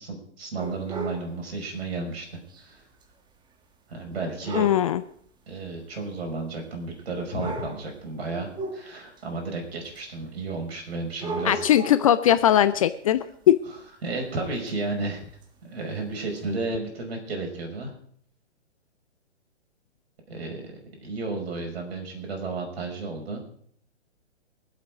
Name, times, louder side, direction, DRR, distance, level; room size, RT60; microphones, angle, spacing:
voice 1, 0.0-2.8 3.9-4.7 5.5-11.6 14.0-15.2 15.6-17.9 20.3-20.7 21.0-23.4, right 3 dB, 60° right, 2 dB, 5.7 m, -33 dB
sound 1, 0.6-1.3 2.5-2.6 3.0-3.1 4.4-4.9 5.9-6.0 7.0-7.1 7.4-7.9 8.5-9.2 10.0-10.1 11.1-12.2 14.7-14.8 15.4-15.5 16.4-16.5, right 3 dB, 10° right, 1.4 m, -35 dB
voice 2, 4.6-5.0 11.4-13.2 13.5-13.6, left 11 dB, 30° left, 13 dB, 0.5 m, -19 dB
23.5 x 8.3 x 5.1 m, 0.62 s
figure-of-eight pair, 125°, 35 cm